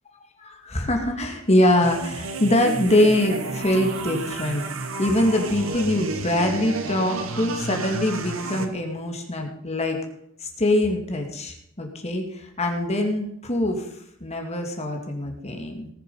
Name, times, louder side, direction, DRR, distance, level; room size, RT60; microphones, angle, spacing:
voice 1, 0.4-4.6 5.0-10.0 10.4-13.9 14.2-15.9, left 1 dB, 30° left, 3 dB, 2.3 m, -23 dB
sound 1, 1.8-8.6, right 3 dB, 70° right, 1.6 m, -31 dB
19.5 x 7.4 x 5.6 m, 0.71 s
head